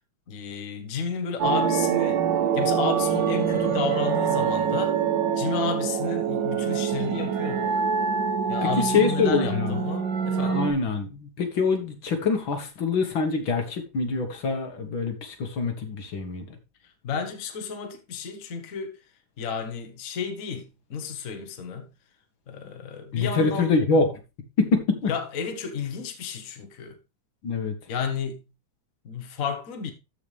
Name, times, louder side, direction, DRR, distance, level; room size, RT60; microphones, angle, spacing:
voice 1, 0.3-2.2 2.5-5.0 5.4-7.8 8.5-10.7 16.8-18.9 19.4-21.9 22.5-23.7 25.1-27.0 27.9-28.4 29.0-29.9, left 6 dB, 45° left, 1.5 m, -32 dB
sound 1, 1.4-10.7, right 7 dB, 65° right, 1.8 m, -25 dB
voice 2, 8.9-9.8 10.4-16.5 23.1-24.2 24.6-25.1 27.4-27.7, left 4 dB, 80° left, 2.4 m, -25 dB
13.5 x 4.9 x 3.4 m
omnidirectional pair, 2.1 m